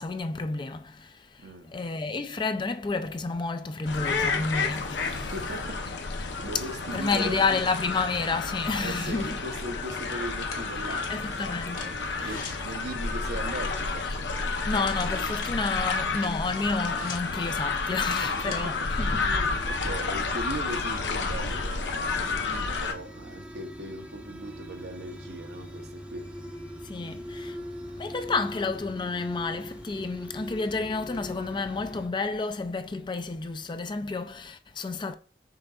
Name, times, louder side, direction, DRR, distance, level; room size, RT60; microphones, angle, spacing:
voice 1, 0.0-5.3 6.9-9.3 10.9-12.4 14.6-19.1 19.7-19.8 26.8-27.6 28.0-35.1, left 3 dB, 25° left, 0.4 m, -30 dB
voice 2, 1.4-1.9 5.1-7.4 8.8-11.8 12.2-14.1 18.2-26.4 27.0-27.3 27.5-27.8, right 1 dB, 65° right, 0.8 m, -39 dB
sound 1, 3.8-22.9, left 4 dB, 80° left, 0.7 m, -30 dB
sound 2, 9.8-18.6, left 3 dB, 50° left, 1.5 m, -44 dB
sound 3, 19.5-32.1, equal, 10° right, 0.7 m, -42 dB
5.7 x 3.9 x 2.4 m
head